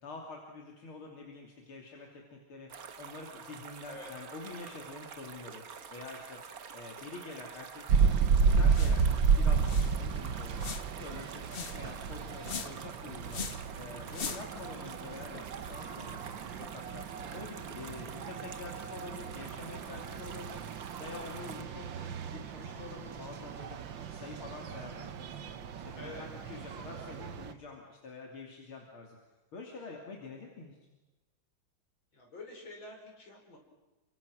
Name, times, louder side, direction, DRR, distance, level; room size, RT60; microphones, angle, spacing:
voice 1, 0.0-5.6 5.9-6.4 6.7-9.0 9.4-10.6 11.0-13.4 13.7-15.4 15.7-16.2 16.6-17.1 17.3-20.6 21.0-23.8 24.1-25.5 25.8-29.2 29.5-30.8, left 3 dB, 90° left, 0 dB, 3.6 m, -46 dB
sound 1, 2.7-21.6, right 6 dB, 50° right, 1.5 m, -48 dB
sound 2, 7.9-27.5, right 5 dB, 65° right, 1.9 m, -32 dB
sound 3, 8.7-9.0 9.3-9.4 9.6-10.0 10.6-11.0 11.5-11.8 12.4-12.9 13.3-13.7 14.1-14.6, left 6 dB, 40° left, 0.9 m, -40 dB
voice 2, 25.9-26.3 32.1-33.6, left 2 dB, 70° left, 1 dB, 6.3 m, -47 dB
29.5 x 25.0 x 6.3 m, 1.1 s
omnidirectional pair, 2.2 m